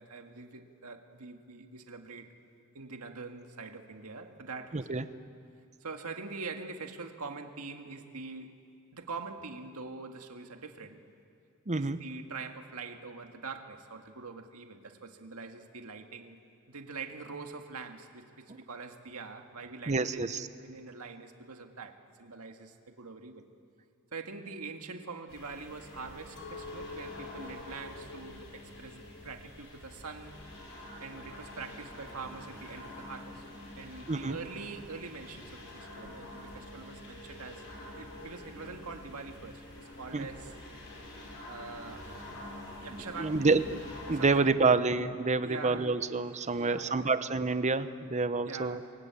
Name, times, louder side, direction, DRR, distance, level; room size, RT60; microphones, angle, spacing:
voice 1, 0.0-2.3 2.7-4.9 5.8-8.6 8.9-11.0 11.7-16.4 16.7-23.5 24.1-30.4 31.0-33.5 33.8-40.5 41.4-42.2 42.8-43.7 44.1-44.8 45.4-45.9 46.2-47.1 48.4-48.9, right 4 dB, 75° right, 5 dB, 1.9 m, -44 dB
voice 2, 4.7-5.0 11.7-12.0 19.9-20.5 34.1-34.4 40.1-40.3 43.2-43.7 44.1-48.8, right 3 dB, 30° right, 12 dB, 0.9 m, -28 dB
sound 1, 25.3-44.4, left 1 dB, 60° left, 5.4 m, -47 dB
Chink clink, 26.4-31.5, left 4 dB, 90° left, 1.9 m, -49 dB
28.0 x 23.0 x 8.4 m, 2.5 s
head